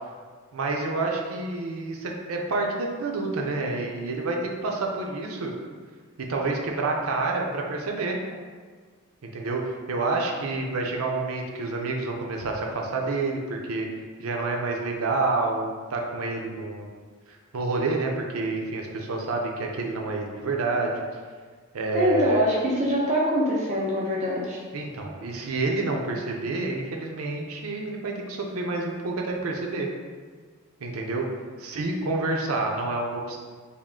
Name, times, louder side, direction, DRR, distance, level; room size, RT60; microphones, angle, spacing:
voice 1, 0.5-5.5 6.2-8.2 9.2-13.9 14.2-16.9 17.3-21.0 21.7-22.4 24.7-29.9 30.8-31.3 31.6-33.4, right 3 dB, 80° right, 1 dB, 0.5 m, -28 dB
voice 2, 21.9-24.6, equal, 35° right, -5 dB, 0.5 m, -24 dB
3.6 x 2.4 x 3.6 m, 1.5 s
head